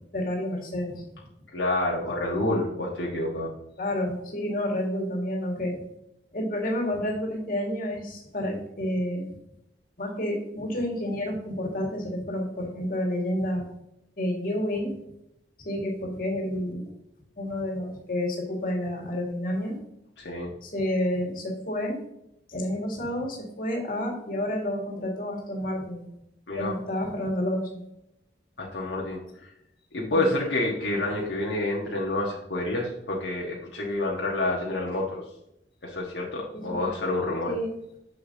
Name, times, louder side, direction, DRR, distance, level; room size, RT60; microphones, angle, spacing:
voice 1, 0.1-1.0 3.8-5.7 6.3-9.2 10.0-13.6 14.2-14.9 15.6-16.8 17.4-19.7 20.6-22.0 22.5-26.0 26.6-27.7 30.1-30.3 36.5-36.8 37.4-37.7, left 1 dB, 50° left, 0 dB, 1.9 m, -29 dB
voice 2, 1.5-3.5 20.2-20.5 26.5-26.7 28.6-29.5 29.9-35.2 35.8-37.5, left 2 dB, 75° left, -2 dB, 1.3 m, -28 dB
6.7 x 6.6 x 2.7 m, 0.82 s
head